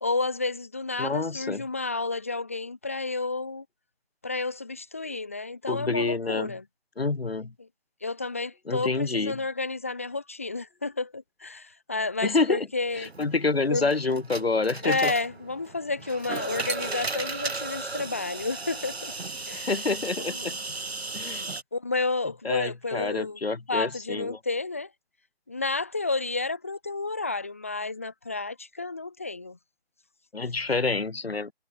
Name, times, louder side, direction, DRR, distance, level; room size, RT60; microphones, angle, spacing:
voice 1, 0.0-3.6 4.2-6.6 7.6-7.7 8.0-13.1 13.7-13.9 14.8-19.1 19.5-19.7 20.2-20.6 21.7-23.4 23.7-24.9 25.5-29.6, left 3 dB, 15° left, 1.4 m, -31 dB
voice 2, 1.0-1.6 5.7-6.5 7.0-7.5 8.7-9.3 12.2-12.7 12.9-15.1 19.5-20.6 21.1-21.5 22.4-24.4 30.3-31.5, left 3 dB, 65° left, 3.3 m, -27 dB
sound 1, 12.9-21.6, right 3 dB, 70° right, 4.7 m, -35 dB
figure-of-eight pair, 180°, 33 cm